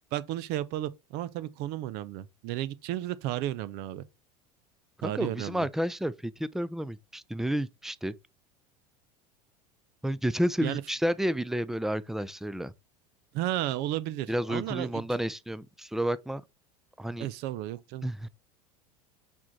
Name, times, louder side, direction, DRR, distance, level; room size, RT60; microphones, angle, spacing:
voice 1, 0.1-4.0 5.0-5.7 10.6-10.8 13.3-15.0 17.2-18.1, right 13 dB, 55° right, 0.7 m, -33 dB
voice 2, 5.0-8.1 10.0-12.7 14.3-16.4 17.0-17.3 18.0-18.3, equal, ahead, 0.5 m, -31 dB
6.0 x 4.5 x 3.7 m
hypercardioid pair, 85°, 20 cm